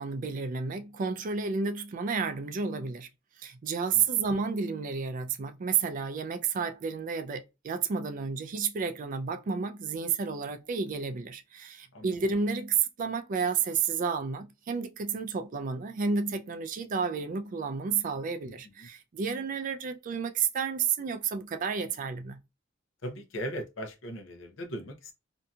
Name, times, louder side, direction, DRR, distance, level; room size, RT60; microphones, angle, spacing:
voice 1, 0.0-3.1 3.4-22.4, right 5 dB, 45° right, 0.3 m, -31 dB
voice 2, 23.0-25.1, equal, 70° left, 0.7 m, -38 dB
2.7 x 2.6 x 2.3 m
head